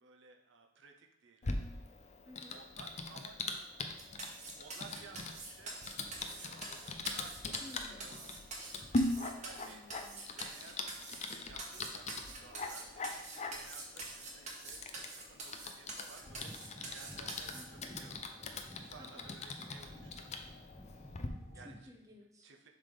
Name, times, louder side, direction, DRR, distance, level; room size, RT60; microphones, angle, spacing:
voice 1, 0.0-1.6 2.5-3.7 4.6-6.6 7.1-8.6 9.2-9.8 10.4-16.5 16.9-17.5 17.9-18.2 18.7-20.3 21.5-21.7 22.4-22.7, right 4 dB, 60° right, 3 dB, 0.6 m, -57 dB
Typing, 1.4-21.3, left 2 dB, 35° left, 0.5 m, -42 dB
voice 2, 2.2-2.7 7.6-8.1 9.5-10.3 17.5-18.0 19.0-19.3 21.3-22.5, left 1 dB, 15° right, 2 dB, 0.8 m, -56 dB
sound 1, 4.0-17.6, right 3 dB, 35° right, 1.2 m, -46 dB
sound 2, 16.2-21.8, equal, 15° left, 1.1 m, -53 dB
7.4 x 3.4 x 5.3 m, 0.87 s
head